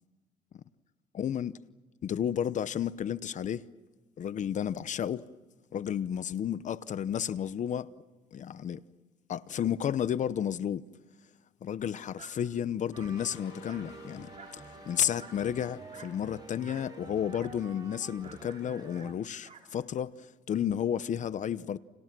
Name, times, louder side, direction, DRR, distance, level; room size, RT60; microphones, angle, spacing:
voice 1, 1.1-1.5 2.0-3.6 4.2-5.3 5.7-7.9 8.3-8.8 9.3-10.8 11.6-21.8, left 9 dB, 45° left, 0.9 m, -32 dB
Dog, 12.2-12.4 12.9-13.2 13.7-13.9 14.4-14.6 15.2-15.4 15.9-16.2 16.6-16.9 17.3-17.6 18.2-19.7, right 5 dB, 40° right, 5.4 m, -52 dB
sound 1, 12.9-19.1, right 5 dB, 25° right, 0.9 m, -49 dB
sound 2, 13.1-19.2, left 9 dB, 75° left, 3.2 m, -56 dB
30.0 x 29.0 x 6.1 m
cardioid pair, 110°, 17 cm